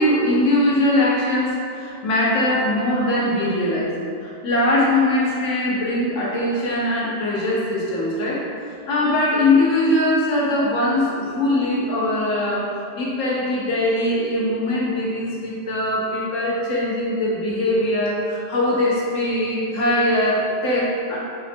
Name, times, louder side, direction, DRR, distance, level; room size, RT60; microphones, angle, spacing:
voice 1, 0.0-21.2, left 1 dB, 85° left, -4 dB, 1.1 m, -21 dB
3.3 x 2.1 x 4.3 m, 2.6 s
omnidirectional pair, 1.3 m